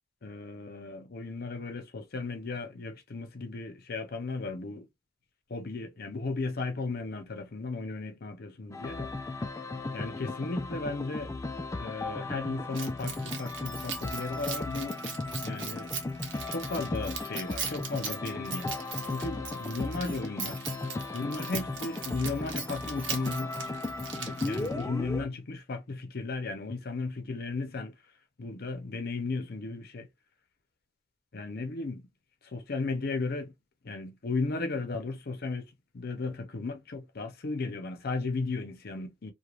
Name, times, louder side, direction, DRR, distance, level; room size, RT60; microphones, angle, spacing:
voice 1, 0.2-4.9 5.5-9.1 9.9-11.3 11.8-15.0 15.4-15.9 16.5-20.6 21.1-23.6 24.1-28.0 28.4-30.1 31.3-32.1 32.4-33.5 33.8-39.3, left 3 dB, 55° left, 0.6 m, -35 dB
sound 1, 8.7-25.3, left 2 dB, 15° left, 0.3 m, -36 dB
Keys jangling, 12.7-24.9, right 6 dB, 80° right, 0.8 m, -40 dB
3.1 x 2.2 x 2.4 m
head